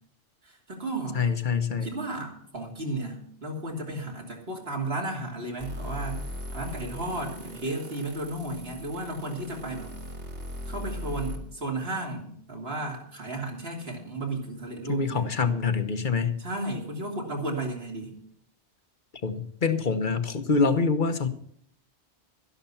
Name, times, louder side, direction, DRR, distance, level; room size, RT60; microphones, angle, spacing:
voice 1, 0.4-1.2 1.8-6.2 6.5-9.9 10.7-15.3 16.4-18.2, right 2 dB, 60° right, 0 dB, 3.2 m, -34 dB
voice 2, 1.1-1.9 14.9-16.4 19.2-21.3, left 5 dB, 45° left, 10 dB, 1.1 m, -25 dB
sound 1, 5.6-11.4, left 1 dB, 75° right, 2.8 m, -38 dB
12.5 x 11.0 x 5.7 m, 0.65 s
omnidirectional pair, 1.2 m